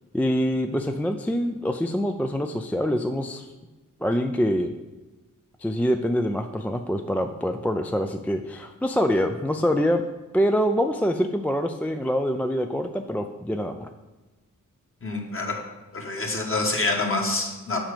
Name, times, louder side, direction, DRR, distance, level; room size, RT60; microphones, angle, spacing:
voice 1, 0.1-3.5 4.0-4.7 5.6-10.0 10.3-13.9, equal, 5° left, 6 dB, 0.4 m, -25 dB
voice 2, 15.0-15.6 15.9-17.8, left 2 dB, 40° left, 1 dB, 1.6 m, -26 dB
6.2 x 4.9 x 6.7 m, 1.2 s
cardioid pair, 70°, 33 cm